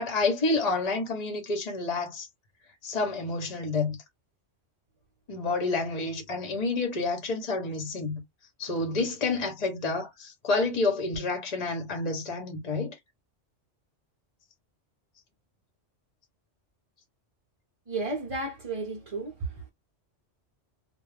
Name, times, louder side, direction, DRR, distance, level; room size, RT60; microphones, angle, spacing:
voice 1, 0.0-2.3 2.8-4.0 5.3-8.2 8.6-12.9, left 3 dB, 40° left, 0.7 m, -29 dB
voice 2, 17.9-19.7, right 3 dB, 35° right, 0.6 m, -33 dB
2.3 x 2.1 x 3.2 m
omnidirectional pair, 1.2 m